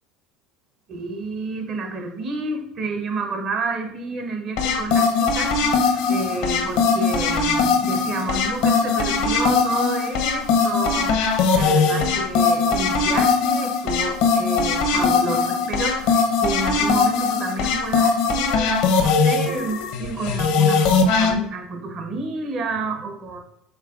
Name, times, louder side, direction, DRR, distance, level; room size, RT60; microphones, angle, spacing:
voice 1, 0.9-23.4, right 3 dB, 50° right, 5 dB, 0.8 m, -30 dB
sound 1, 4.6-21.3, left 5 dB, 75° left, 0.7 m, -20 dB
4.9 x 3.5 x 2.4 m, 0.83 s
supercardioid pair, 90°, 0 cm